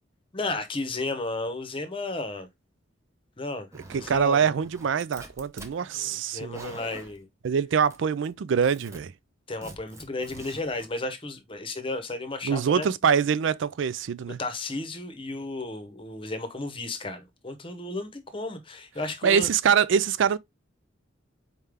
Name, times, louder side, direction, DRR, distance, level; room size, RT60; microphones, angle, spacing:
voice 1, 0.3-2.5 3.4-3.7 3.9-4.4 5.9-7.3 9.5-12.9 14.4-19.5, left 2 dB, 25° left, 0.8 m, -33 dB
Zipper (clothing), 3.7-4.2 4.6-5.8 6.3-7.2 7.9-8.3 8.5-9.0 9.6-10.9, right 2 dB, 15° right, 0.7 m, -45 dB
voice 2, 3.9-6.7 7.4-9.1 12.4-14.4 19.2-20.4, right 7 dB, 70° right, 0.4 m, -24 dB
4.3 x 3.6 x 3.3 m
head